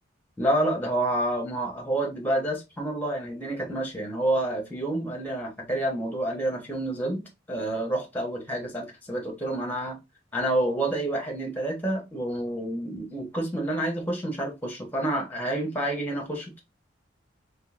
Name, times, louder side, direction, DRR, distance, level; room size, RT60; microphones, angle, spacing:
voice 1, 0.4-7.2 7.5-10.0 10.3-16.6, right 1 dB, 10° left, 1.0 m, -28 dB
3.7 x 3.2 x 2.4 m
head